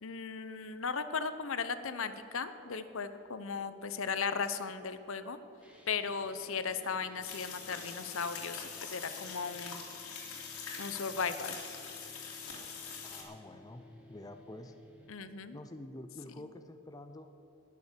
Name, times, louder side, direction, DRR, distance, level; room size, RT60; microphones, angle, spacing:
voice 1, 0.0-5.4 5.9-9.8 10.8-11.6 15.1-15.6, left 5 dB, 60° left, 11 dB, 0.8 m, -36 dB
sound 1, 5.6-15.1, left 2 dB, 5° right, 1.8 m, -58 dB
sound 2, 7.2-13.2, left 5 dB, 90° left, 2.9 m, -44 dB
voice 2, 13.0-14.7 15.5-17.4, left 1 dB, 15° left, 7 dB, 0.5 m, -48 dB
20.0 x 6.8 x 6.8 m, 2.9 s
head